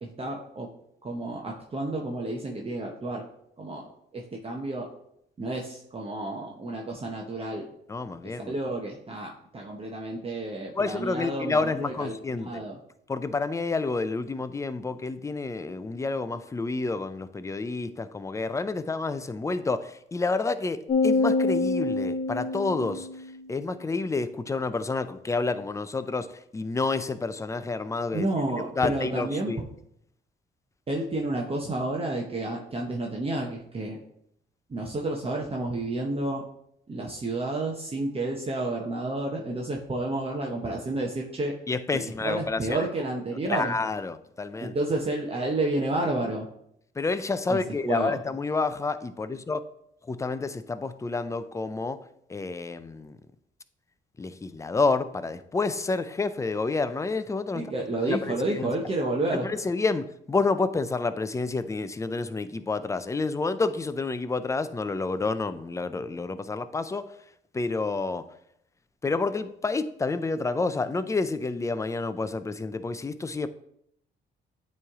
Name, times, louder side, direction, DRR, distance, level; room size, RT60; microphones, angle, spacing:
voice 1, 0.0-0.7 1.0-3.2 3.6-3.9 4.1-4.9 5.4-7.7 8.2-12.8 28.1-29.6 30.9-34.0 34.7-36.4 36.9-41.5 41.9-43.7 44.6-46.5 47.5-48.2 57.5-59.5, right 2 dB, 30° right, 0 dB, 0.8 m, -30 dB
voice 2, 7.9-8.5 10.7-12.6 13.1-23.1 23.5-26.3 26.5-28.3 28.8-29.6 41.7-42.8 43.5-44.7 47.0-49.6 50.1-52.0 52.3-53.2 54.2-57.6 58.1-58.4 59.4-67.1 67.5-68.2 69.0-73.5, left 3 dB, 15° left, 12 dB, 0.4 m, -29 dB
sound 1, 20.9-23.4, left 3 dB, 40° left, 1.0 m, -26 dB
8.7 x 3.2 x 3.6 m, 0.74 s
cardioid pair, 90°, 20 cm